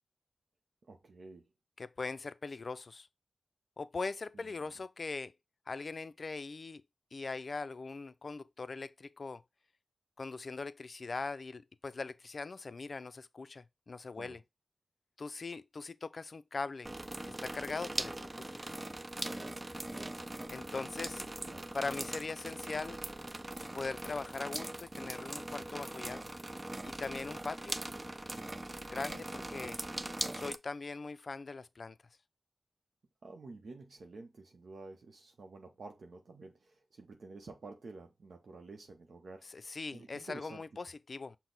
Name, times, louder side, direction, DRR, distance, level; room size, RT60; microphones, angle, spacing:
voice 1, 0.9-1.5 4.3-4.5 14.2-14.4 20.2-20.4 21.1-21.7 33.2-40.6, right 3 dB, 80° right, 0.6 m, -51 dB
voice 2, 1.8-3.1 3.8-5.3 5.7-6.8 7.1-9.4 10.2-14.4 15.2-16.9 17.2-18.7 20.5-21.2 21.7-23.0 23.7-26.3 26.8-27.8 28.9-29.8 30.3-32.0 39.4-41.4, left 4 dB, 65° left, 0.3 m, -41 dB
sound 1, 16.8-30.6, right 1 dB, 30° right, 0.4 m, -41 dB
6.0 x 2.0 x 3.9 m
cardioid pair, 40°, 0 cm